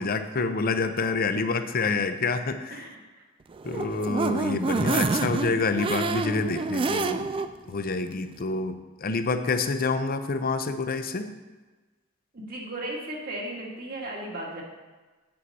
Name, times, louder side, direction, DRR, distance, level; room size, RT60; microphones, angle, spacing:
voice 1, 0.0-2.9 3.6-7.3 7.7-11.3, left 3 dB, 45° left, 9 dB, 0.6 m, -27 dB
voice 2, 2.7-3.2 12.3-14.6, right 1 dB, 50° right, -1 dB, 1.8 m, -36 dB
sound 1, 3.5-7.5 7.9-8.0 8.3-8.4, right 4 dB, 25° right, 0.3 m, -28 dB
8.2 x 7.8 x 4.2 m, 1.3 s
head